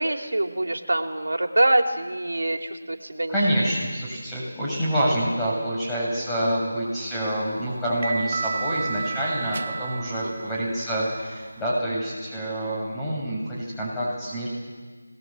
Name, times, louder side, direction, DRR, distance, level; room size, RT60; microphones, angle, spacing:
voice 1, 0.0-3.4 10.2-10.5, right 1 dB, 80° right, 4 dB, 3.1 m, -25 dB
voice 2, 3.3-14.5, right 1 dB, 5° left, -8 dB, 7.3 m, -27 dB
sound 1, 6.9-11.8, right 4 dB, 35° right, 1.0 m, -33 dB
27.0 x 20.5 x 7.8 m, 1.4 s
figure-of-eight pair, 170°, 0 cm